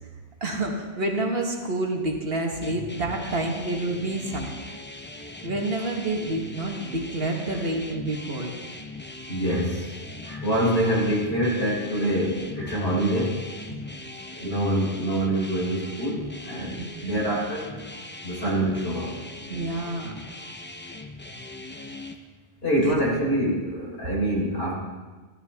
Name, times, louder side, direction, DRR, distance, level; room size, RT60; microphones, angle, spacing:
voice 1, 0.4-4.5 5.4-8.5 10.6-10.8 13.7-13.9 16.8-17.0 19.5-20.1 22.8-22.9, right 2 dB, 60° right, 2 dB, 1.6 m, -28 dB
sound 1, 2.6-22.2, left 2 dB, 15° left, 0.6 m, -40 dB
voice 2, 9.3-9.9 10.2-13.4 14.4-17.7 18.2-19.1 22.6-24.7, right 1 dB, 65° left, -5 dB, 4.4 m, -25 dB
15.0 x 12.5 x 3.5 m, 1.3 s
omnidirectional pair, 1.1 m